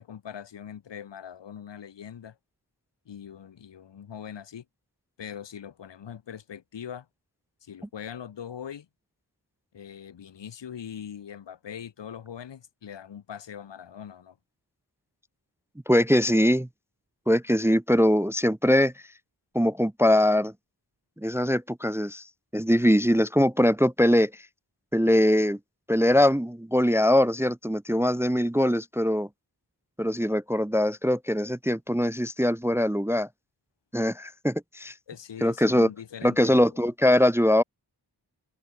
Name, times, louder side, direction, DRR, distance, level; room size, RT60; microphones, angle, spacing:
voice 1, 0.0-2.4 3.1-4.6 5.2-7.1 7.6-8.9 9.7-14.4 35.1-36.8, left 8 dB, 85° left, 0.9 m, -41 dB
voice 2, 15.9-16.7 17.3-18.9 19.5-20.5 21.2-22.2 22.5-24.3 24.9-25.6 25.9-29.3 30.0-33.3 33.9-34.9 35.4-35.9 36.2-37.6, equal, 5° right, 0.4 m, -22 dB
wide cardioid pair, 75°, 42 cm